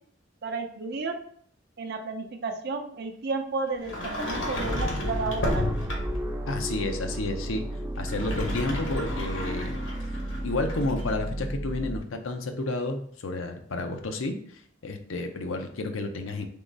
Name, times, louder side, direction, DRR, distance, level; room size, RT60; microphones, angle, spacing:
voice 1, 0.4-1.2 1.8-5.7, right 3 dB, 55° right, 4 dB, 0.6 m, -32 dB
Sliding door, 3.8-6.3 7.9-11.1, left 1 dB, 65° left, 1.0 m, -32 dB
sound 1, 4.6-12.0, right 1 dB, 10° right, 0.3 m, -33 dB
voice 2, 6.5-7.6 8.0-10.2 10.4-16.5, left 2 dB, 85° left, 5 dB, 0.6 m, -31 dB
3.7 x 3.0 x 3.8 m, 0.63 s
head